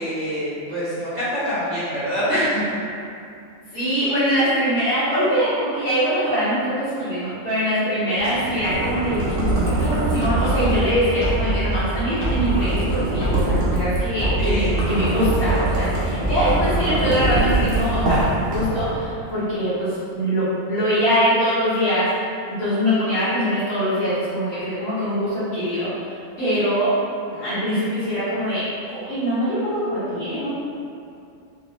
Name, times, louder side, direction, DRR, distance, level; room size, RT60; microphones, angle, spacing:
voice 1, 0.0-2.6 14.4-14.7, equal, 35° right, -12 dB, 1.2 m, -25 dB
voice 2, 3.7-22.1 22.5-26.9 27.3-30.5, equal, 60° left, -18 dB, 1.9 m, -23 dB
sound 1, 8.2-19.1, right 2 dB, 85° right, 1.2 m, -25 dB
sound 2, 10.2-18.0, right 1 dB, 30° left, 1.1 m, -25 dB
3.3 x 3.2 x 2.9 m, 2.5 s
omnidirectional pair, 1.4 m